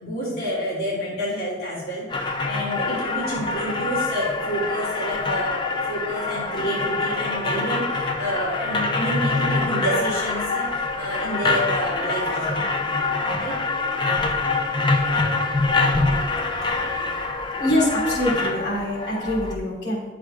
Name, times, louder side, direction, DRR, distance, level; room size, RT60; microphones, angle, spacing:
voice 1, 0.0-12.6 13.3-13.5 16.1-16.2, equal, 60° left, -9 dB, 2.4 m, -29 dB
sound 1, 2.1-19.6, left 3 dB, 25° left, 0.7 m, -25 dB
voice 2, 16.6-17.0 17.6-20.0, left 1 dB, 75° left, -3 dB, 3.3 m, -25 dB
10.0 x 7.6 x 3.3 m, 1.1 s
head